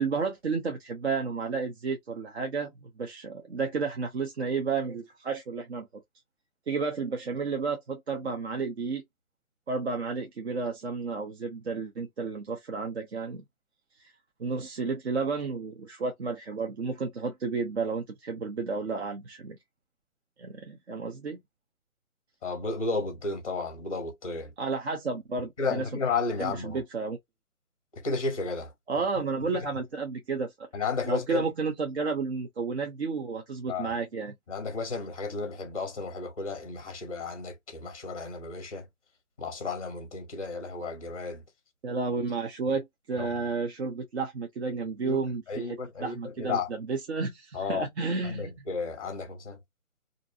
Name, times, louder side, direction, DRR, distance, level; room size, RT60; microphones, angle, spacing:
voice 1, 0.0-6.0 6.7-9.0 9.7-13.4 14.0-14.1 14.4-19.6 20.4-21.4 24.6-25.9 26.4-27.2 28.9-30.7 31.0-34.3 41.8-45.4 45.7-48.5, right 4 dB, 50° right, 0.6 m, -32 dB
voice 2, 22.4-24.5 25.6-26.8 27.9-28.7 29.6-29.7 30.7-31.5 33.7-33.9 34.5-38.9 39.4-41.4 43.2-43.3 45.0-45.2 45.5-46.7 47.5-47.9 48.2-49.6, left 4 dB, 25° left, 0.6 m, -33 dB
2.6 x 2.1 x 2.5 m
hypercardioid pair, 155°, 44 cm